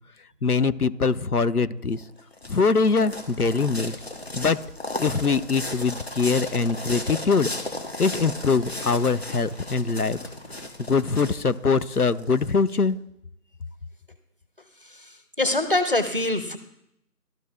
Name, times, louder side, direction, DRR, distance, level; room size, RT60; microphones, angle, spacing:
voice 1, 0.4-2.0 2.5-3.9 4.4-4.6 5.0-7.5 8.0-10.2 10.9-13.0, left 4 dB, 70° left, 15 dB, 0.7 m, -23 dB
sound 1, 1.9-12.7, left 2 dB, 40° left, 1.2 m, -35 dB
voice 2, 15.4-16.6, left 2 dB, 35° right, 9 dB, 0.8 m, -23 dB
13.5 x 4.6 x 2.4 m, 0.77 s
figure-of-eight pair, 170°, 47 cm